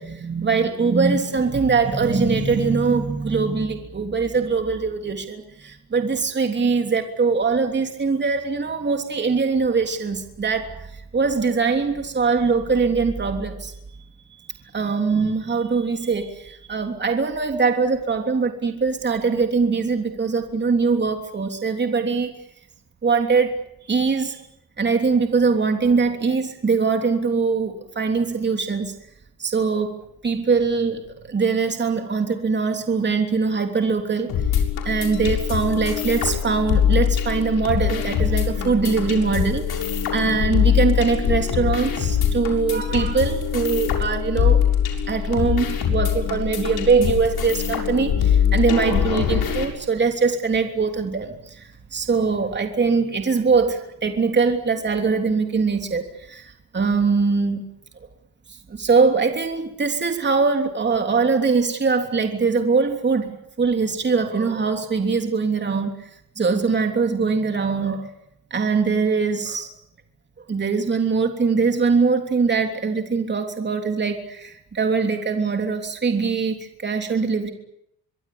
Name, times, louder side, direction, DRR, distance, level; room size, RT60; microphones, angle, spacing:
voice 1, 0.0-13.7 14.7-22.3 23.0-23.6 23.9-24.4 24.8-28.9 29.4-34.3 34.8-44.6 45.1-57.6 58.7-65.9 66.4-68.1 68.5-69.7 70.5-77.5, right 4 dB, 30° right, 4 dB, 3.3 m, -22 dB
sound 1, 34.3-49.7, left 8 dB, 75° left, 6.9 m, -22 dB
25.0 x 23.0 x 8.7 m, 0.76 s
cardioid pair, 115°, 37 cm